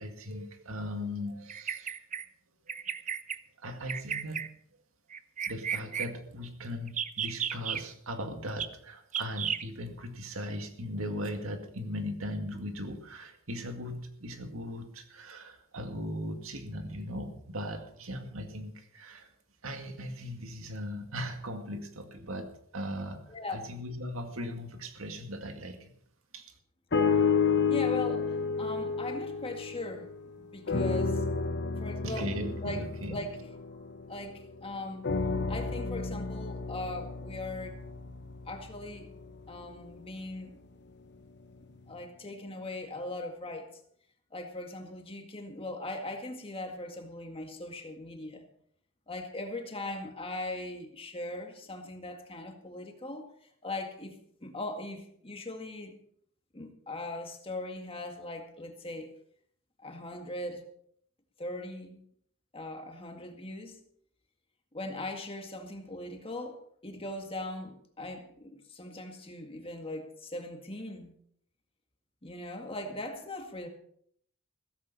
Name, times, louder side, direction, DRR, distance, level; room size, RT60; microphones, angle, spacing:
voice 1, 0.0-2.1 2.7-2.8 3.6-4.5 5.5-19.3 19.6-25.9 26.3-26.5 32.0-33.2, equal, 70° right, 5 dB, 2.1 m, -38 dB
Bird vocalization bird call bird song, 1.5-2.2 2.7-3.4 3.9-4.5 5.1-6.1 6.9-7.8 8.6-8.7 9.1-9.6, right 8 dB, 35° right, 0.7 m, -33 dB
sound 1, 26.9-30.3 30.7-34.4 35.0-39.3 39.9-40.0, left 5 dB, 55° left, 1.1 m, -31 dB
voice 2, 27.7-30.1 30.4-31.3 31.7-32.3 32.6-32.8 33.1-33.4 34.1-35.0 35.5-37.8 38.5-39.1 39.5-40.6 41.9-43.7 44.3-48.5 49.1-53.3 53.6-55.9 56.5-59.1 59.8-60.6 61.4-62.0 62.5-63.8 64.7-71.1 72.2-73.7, left 2 dB, 25° left, 4 dB, 1.9 m, -39 dB
15.5 x 14.5 x 4.2 m, 0.65 s
head